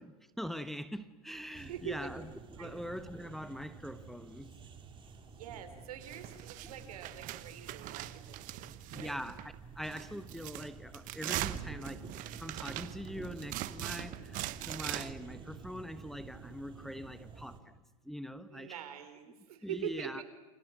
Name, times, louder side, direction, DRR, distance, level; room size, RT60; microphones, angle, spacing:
voice 1, 0.0-2.3 2.6-4.5 6.6-6.7 8.9-17.7 18.0-18.7 19.6-20.2, equal, ahead, 11 dB, 1.1 m, -43 dB
sound 1, 1.5-17.6, right 5 dB, 25° right, 3.4 m, -50 dB
voice 2, 1.6-2.1 2.6-2.8 5.2-9.2 18.5-20.2, right 9 dB, 80° right, 8 dB, 4.3 m, -44 dB
sound 2, 6.0-9.6 9.8-15.1, right 16 dB, 45° right, 1.2 m, -41 dB
28.5 x 27.5 x 6.1 m, 1.1 s
hypercardioid pair, 115°, 19 cm